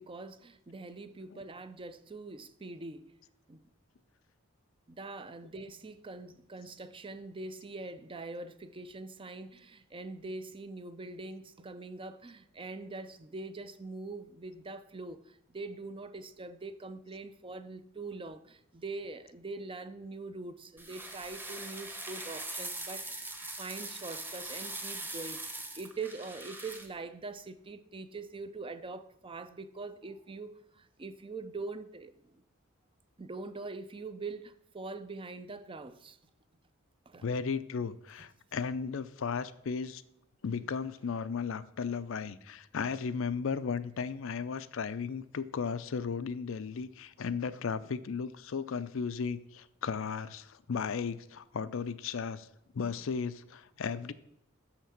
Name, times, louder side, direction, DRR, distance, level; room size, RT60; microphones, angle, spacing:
voice 1, 0.0-3.1 3.5-3.6 4.9-23.3 23.6-32.4 33.2-36.2 37.1-37.3, right 3 dB, 25° right, 0.5 m, -43 dB
sound 1, 20.8-26.9, right 2 dB, 10° right, 1.0 m, -41 dB
voice 2, 37.2-40.0 40.4-52.5 52.7-54.1, left 5 dB, 65° left, 0.5 m, -35 dB
6.6 x 5.8 x 7.2 m
head